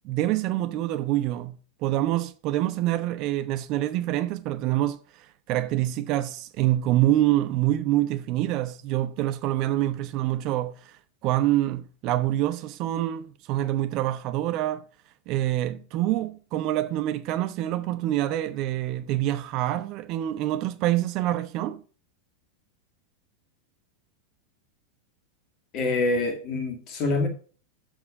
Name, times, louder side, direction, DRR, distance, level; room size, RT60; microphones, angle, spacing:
voice 1, 0.0-5.0 5.5-10.9 11.2-14.8 15.3-21.8, right 14 dB, 40° right, 0.7 m, -26 dB
voice 2, 25.7-27.3, left 2 dB, 35° left, 2.0 m, -25 dB
7.0 x 6.3 x 4.7 m
figure-of-eight pair, 90°, 0 cm